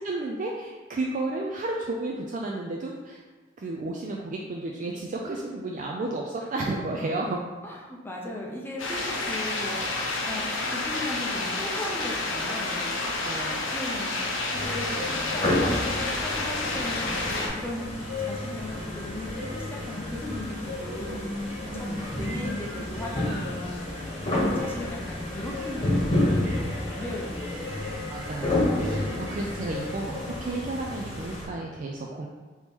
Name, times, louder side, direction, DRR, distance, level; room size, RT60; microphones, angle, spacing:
voice 1, 0.0-3.2 3.6-7.4 8.9-9.0 13.2-13.7 21.7-22.5 28.1-32.3, right 2 dB, 40° right, -1 dB, 0.3 m, -32 dB
voice 2, 7.6-9.0 9.2-12.9 13.7-15.5 15.8-17.9 18.2-21.5 21.7-27.8, left 1 dB, 10° left, -2 dB, 0.6 m, -37 dB
sound 1, 8.8-17.5, left 2 dB, 85° left, 0.7 m, -30 dB
sound 2, 14.5-31.4, left 1 dB, 30° left, 1.1 m, -30 dB
3.6 x 2.9 x 4.3 m, 1.4 s
head